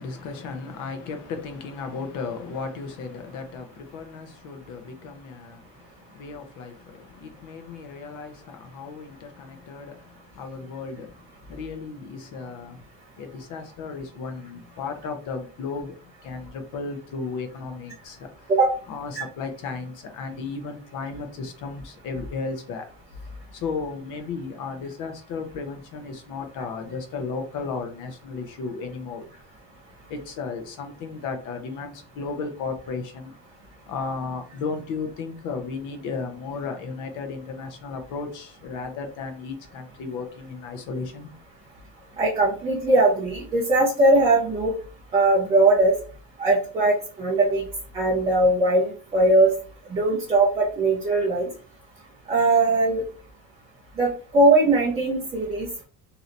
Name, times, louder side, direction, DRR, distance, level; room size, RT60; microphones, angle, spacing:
voice 1, 0.0-12.8 13.2-18.5 18.9-22.9 23.5-29.5 30.1-33.3 33.9-41.3, left 4 dB, 45° left, 0.7 m, -34 dB
voice 2, 42.2-44.7 45.1-46.0 46.4-47.7 47.9-49.6 49.9-51.5 52.3-53.0 54.0-55.8, right 2 dB, 15° right, 0.5 m, -20 dB
3.1 x 2.8 x 2.6 m
cardioid pair, 175°, 43 cm